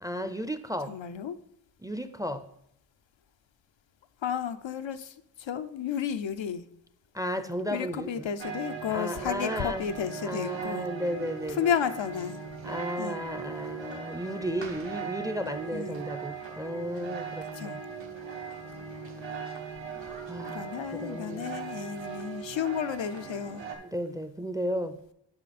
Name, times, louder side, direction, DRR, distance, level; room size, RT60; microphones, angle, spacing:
voice 1, 0.0-0.9 1.8-2.5 7.1-8.3 8.9-9.9 10.2-11.7 12.6-17.8 20.3-20.7 21.0-21.6 23.8-25.0, equal, 10° right, 10 dB, 0.5 m, -34 dB
voice 2, 0.9-1.4 4.2-6.7 7.7-10.9 11.5-12.4 13.0-13.2 15.7-16.0 17.5-17.8 20.5-23.6, left 8 dB, 85° left, 9 dB, 0.7 m, -32 dB
sound 1, 8.4-23.7, right 5 dB, 80° right, 1.4 m, -39 dB
8.8 x 5.7 x 4.2 m, 0.75 s
wide cardioid pair, 110°, 44 cm